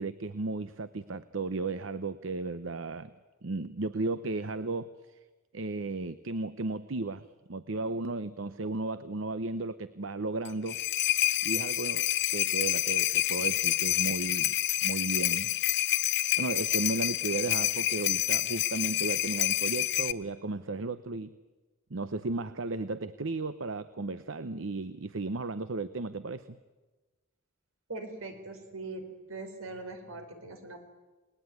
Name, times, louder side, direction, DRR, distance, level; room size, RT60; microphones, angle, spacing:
voice 1, 0.0-3.1 3.4-5.2 5.5-10.8 11.4-12.0 12.3-14.5 14.8-15.5 16.4-21.3 21.9-26.6, right 3 dB, 70° right, 13 dB, 0.8 m, -34 dB
sound 1, 10.4-20.1, left 14 dB, 55° left, 0.9 m, -28 dB
voice 2, 27.9-30.8, right 2 dB, 85° right, 6 dB, 4.4 m, -41 dB
29.5 x 20.0 x 9.3 m, 1.2 s
head